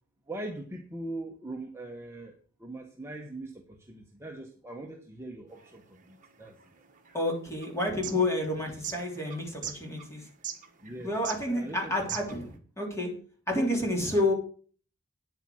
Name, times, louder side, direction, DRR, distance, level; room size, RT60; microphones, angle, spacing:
voice 1, 0.3-6.6 10.8-11.2 11.5-12.2, right 2 dB, 10° right, 1.0 m, -41 dB
sound 1, 5.5-12.6, right 9 dB, 35° right, 1.5 m, -42 dB
voice 2, 7.1-10.3 11.0-13.1 13.5-14.3, left 1 dB, 15° left, 3.4 m, -29 dB
9.6 x 8.1 x 6.2 m
head